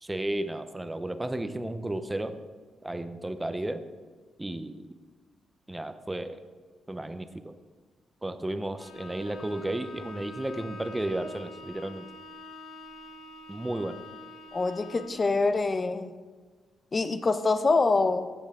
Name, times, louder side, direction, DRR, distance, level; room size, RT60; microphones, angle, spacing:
voice 1, 0.0-2.4 2.8-3.8 4.4-4.9 5.7-6.4 6.9-7.5 8.2-12.1 13.5-14.0, right 1 dB, 10° right, 10 dB, 0.6 m, -33 dB
Bowed string instrument, 8.8-15.3, left 1 dB, 85° left, 1.2 m, -46 dB
voice 2, 14.5-16.1 16.9-18.3, left 3 dB, 30° left, 11 dB, 0.6 m, -25 dB
15.0 x 8.0 x 3.7 m, 1.4 s
cardioid pair, 140°, 0 cm